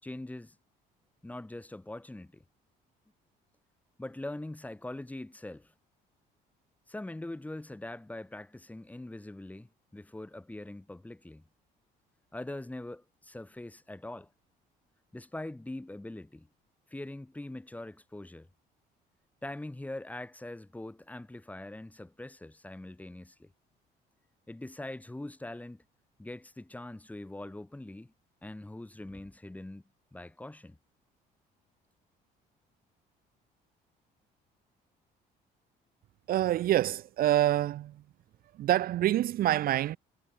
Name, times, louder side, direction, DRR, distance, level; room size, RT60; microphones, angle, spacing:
voice 1, 0.0-0.6 1.2-2.4 4.0-5.7 6.9-11.4 12.3-14.3 15.1-16.5 16.9-18.5 19.4-23.5 24.5-25.8 26.2-28.1 28.4-29.8 30.1-30.8, left 1 dB, 10° left, 4.5 m, -42 dB
voice 2, 36.3-38.0 38.5-40.0, right 13 dB, 60° right, 0.8 m, -26 dB
cardioid pair, 110°, 17 cm